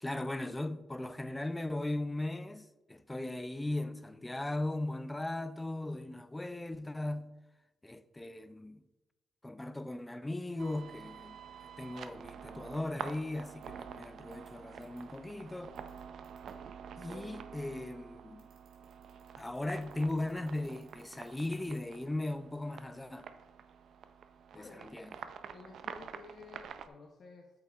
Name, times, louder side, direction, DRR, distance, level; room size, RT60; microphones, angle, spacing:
voice 1, 0.0-7.3 7.8-8.8 9.4-15.7 17.0-18.5 19.4-23.2 24.5-25.1, left 2 dB, 10° left, 0.4 m, -38 dB
sound 1, 10.6-26.9, right 7 dB, 65° right, 0.4 m, -48 dB
sound 2, 13.5-13.6 14.3-14.5 14.8-15.0 15.7-16.5 18.4-21.8, right 7 dB, 85° right, 1.5 m, -67 dB
voice 2, 24.6-24.9 25.5-27.5, left 4 dB, 50° left, 0.7 m, -52 dB
8.0 x 5.3 x 2.4 m
cardioid pair, 90°, 0 cm